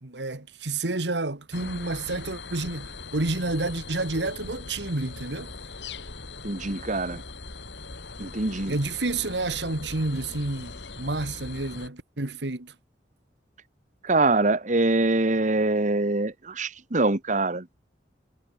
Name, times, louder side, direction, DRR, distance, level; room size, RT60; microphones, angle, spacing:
voice 1, 0.0-5.5 8.7-12.7, right 2 dB, 80° right, 1.9 m, -30 dB
sound 1, 1.5-11.9, left 3 dB, 80° left, 2.7 m, -40 dB
voice 2, 6.4-7.2 8.2-8.7 14.0-17.6, right 2 dB, 45° right, 1.5 m, -24 dB
head